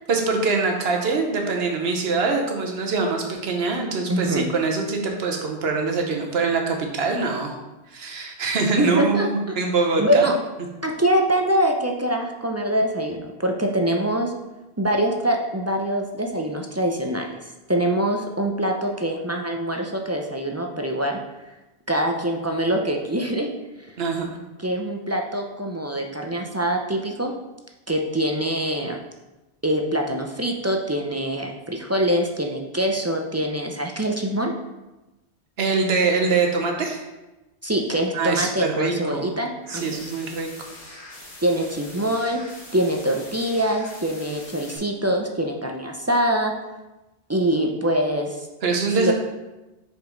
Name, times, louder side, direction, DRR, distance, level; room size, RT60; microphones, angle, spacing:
voice 1, 0.1-7.5 7.9-10.3 24.0-24.4 35.6-37.0 38.1-39.3 39.7-40.5 48.6-49.1, right 4 dB, 75° right, 2 dB, 1.2 m, -24 dB
voice 2, 4.1-4.4 8.8-9.6 10.0-10.3 10.8-14.3 14.8-17.3 17.7-21.2 21.9-23.5 24.6-27.4 27.9-29.0 29.6-34.5 37.6-40.1 41.4-42.4 42.7-46.5 47.3-48.4 49.0-49.1, right 1 dB, 25° right, 2 dB, 0.3 m, -24 dB
sound 1, 39.6-44.8, left 1 dB, 85° left, 1.7 m, -43 dB
5.4 x 4.9 x 3.8 m, 1.0 s
omnidirectional pair, 1.1 m